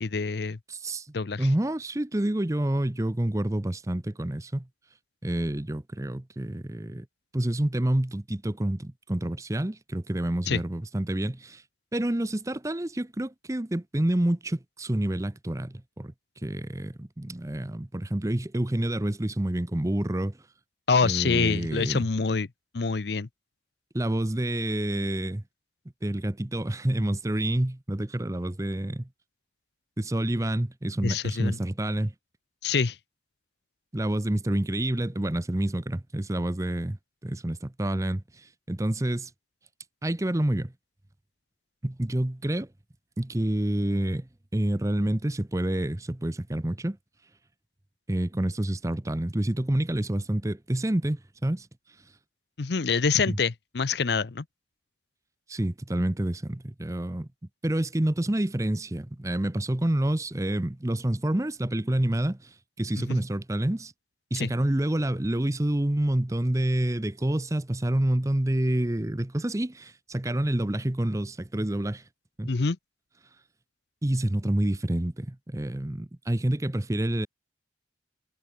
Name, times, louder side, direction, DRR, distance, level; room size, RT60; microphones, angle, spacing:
voice 1, 0.0-0.6 1.1-1.5 10.5-10.6 20.9-22.5 22.7-23.3 31.0-31.6 32.6-33.0 52.6-54.4 63.0-63.2 64.4-64.5 72.5-72.8, left 5 dB, 65° left, 0.6 m, -26 dB
voice 2, 0.7-1.1 1.4-4.7 5.2-7.1 7.3-11.6 11.9-16.1 16.4-20.4 21.0-22.1 23.9-25.4 26.0-29.1 30.0-32.1 33.9-37.0 37.2-39.3 40.0-40.7 41.8-42.7 43.2-47.0 48.1-51.7 53.3-53.4 55.5-57.3 57.6-63.9 64.3-72.0 72.4-72.5 74.0-77.3, right 1 dB, 15° right, 0.7 m, -28 dB
head